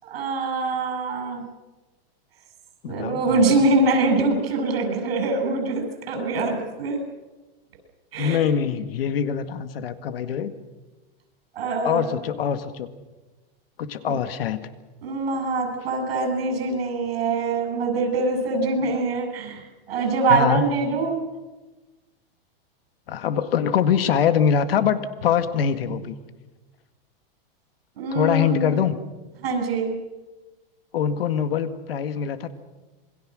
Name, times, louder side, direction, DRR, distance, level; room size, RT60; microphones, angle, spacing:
voice 1, 0.0-1.4 2.8-7.0 8.1-8.4 11.6-12.1 14.1-14.2 15.0-21.2 28.0-28.8 29.4-29.9, right 3 dB, 85° right, 5 dB, 7.6 m, -24 dB
voice 2, 2.8-3.7 8.2-10.5 11.8-12.9 13.8-14.6 18.8-19.0 20.3-20.6 23.1-26.2 28.1-29.0 30.9-32.5, left 8 dB, 75° left, 11 dB, 2.0 m, -23 dB
27.5 x 22.5 x 6.4 m, 1.2 s
supercardioid pair, 180°, 29 cm